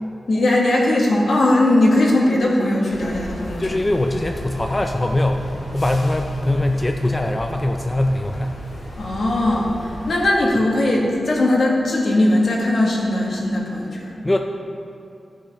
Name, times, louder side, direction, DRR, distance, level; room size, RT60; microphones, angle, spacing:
voice 1, 0.3-3.7 8.9-14.1, left 1 dB, 65° left, -3 dB, 1.7 m, -19 dB
sound 1, 2.9-10.2, equal, 85° left, 1.9 m, -35 dB
voice 2, 3.6-8.5 14.2-14.4, left 1 dB, 15° left, 3 dB, 0.4 m, -21 dB
14.5 x 6.1 x 4.2 m, 2.8 s
wide cardioid pair, 180°, 0 cm